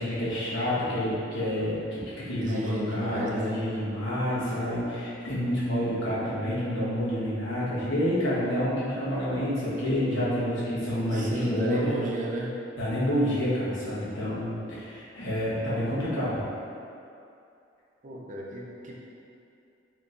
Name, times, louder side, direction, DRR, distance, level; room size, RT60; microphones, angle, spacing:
voice 1, 0.0-12.0 12.8-16.4, equal, 80° left, -10 dB, 1.2 m, -28 dB
voice 2, 2.4-3.6 11.1-12.6 18.0-18.9, equal, 45° right, -3 dB, 0.5 m, -32 dB
4.4 x 3.0 x 2.5 m, 2.7 s
head